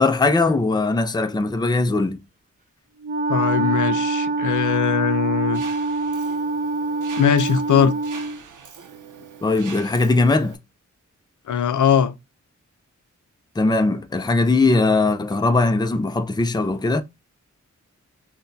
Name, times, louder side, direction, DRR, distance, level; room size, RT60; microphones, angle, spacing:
voice 1, 0.0-2.2 9.4-10.6 13.6-17.0, left 3 dB, 15° left, 0.4 m, -20 dB
Wind instrument woodwind instrument, 3.0-8.4, right 3 dB, 25° right, 0.8 m, -25 dB
voice 2, 3.3-5.6 7.2-7.9 11.5-12.1, left 7 dB, 80° left, 0.5 m, -20 dB
Mechanisms, 5.5-10.5, right 6 dB, 90° right, 0.6 m, -42 dB
5.8 x 2.2 x 2.6 m
wide cardioid pair, 80°, 30 cm